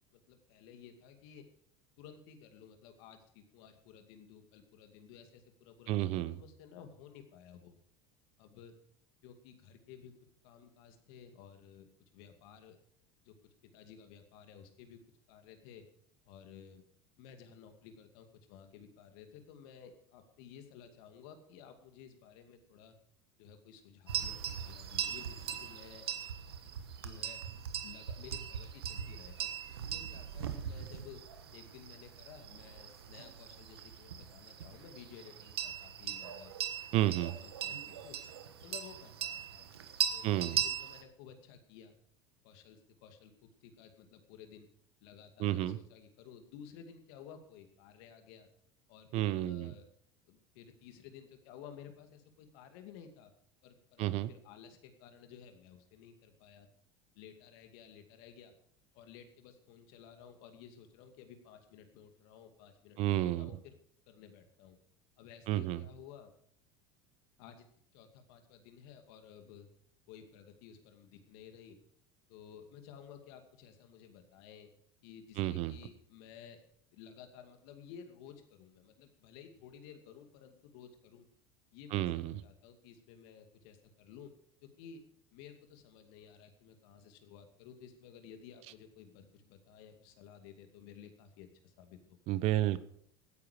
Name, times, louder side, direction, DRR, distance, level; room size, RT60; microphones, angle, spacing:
voice 1, 0.1-1.4 2.0-7.8 8.4-8.7 9.2-10.1 10.4-12.8 13.2-13.4 13.7-15.0 15.3-15.8 16.3-16.8 17.2-22.9 23.4-26.1 27.0-27.4 27.8-31.2 31.5-36.5 36.9-38.2 38.6-39.7 40.1-42.0 42.4-44.7 45.0-48.5 48.9-49.9 50.3-53.3 53.6-56.7 57.2-58.5 58.9-63.7 64.1-64.8 65.2-66.3 67.4-67.6 67.9-69.7 70.1-71.8 72.3-74.7 75.0-76.6 76.9-81.3 81.7-82.1 82.4-84.3 84.6-85.0 85.3-92.2, left 8 dB, 70° left, 6 dB, 2.4 m, -54 dB
voice 2, 5.9-6.4 36.9-37.3 40.2-40.6 45.4-45.8 49.1-49.7 54.0-54.3 63.0-63.5 65.5-65.8 75.4-75.7 81.9-82.4 92.3-92.8, right 14 dB, 60° right, 16 dB, 0.9 m, -31 dB
sound 1, 24.1-41.0, right 8 dB, 90° right, 1.3 m, -40 dB
16.5 x 9.7 x 5.0 m, 0.65 s
hypercardioid pair, 85°, 13 cm